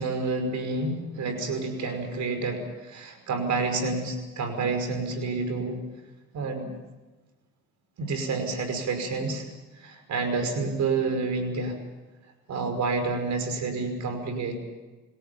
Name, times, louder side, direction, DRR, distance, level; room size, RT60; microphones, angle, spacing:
voice 1, 0.0-5.8 6.3-6.6 8.0-9.5 9.8-11.8 12.5-14.6, right 3 dB, 70° right, 7 dB, 5.6 m, -29 dB
27.5 x 17.5 x 7.1 m, 1.2 s
cardioid pair, 90°, 30 cm